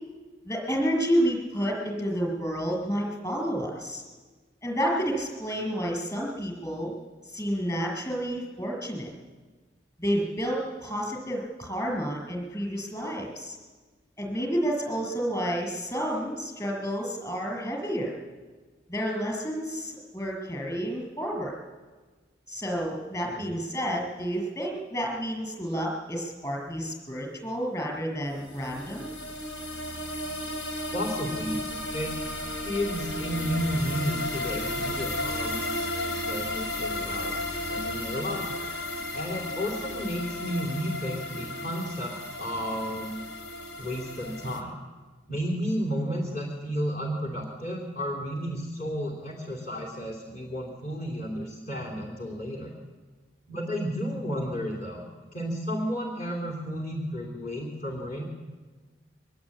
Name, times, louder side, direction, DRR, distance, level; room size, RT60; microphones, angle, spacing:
voice 1, 0.4-4.0 4.6-6.9 7.2-9.1 10.0-13.6 14.2-18.1 18.9-21.5 22.5-29.0, equal, 20° left, 1 dB, 6.5 m, -30 dB
sound 1, 28.4-44.6, left 1 dB, 85° left, 3.8 m, -34 dB
voice 2, 30.9-31.7 31.9-32.1 32.6-35.6 36.3-37.3 37.7-38.7 39.1-42.1 42.4-43.2 43.8-44.7 45.3-52.7 53.5-55.0 55.3-58.2, equal, 45° left, 0 dB, 3.6 m, -32 dB
23.5 x 21.0 x 8.8 m, 1.4 s
head